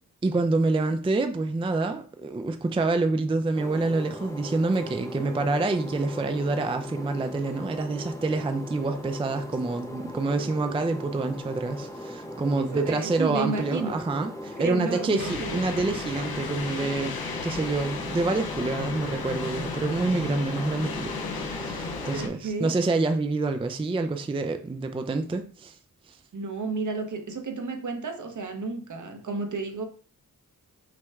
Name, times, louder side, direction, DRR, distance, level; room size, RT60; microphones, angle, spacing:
voice 1, 0.2-17.2 17.4-25.8 26.1-26.2, right 3 dB, 15° right, 0.4 m, -27 dB
sound 1, 3.5-22.2, equal, 10° left, 0.9 m, -39 dB
voice 2, 12.6-14.0 14.6-15.6 22.0-22.7 26.3-29.9, right 3 dB, 55° right, 0.9 m, -32 dB
sound 2, 15.2-22.3, left 4 dB, 85° left, 0.7 m, -34 dB
6.0 x 2.2 x 3.5 m
cardioid pair, 55°, 36 cm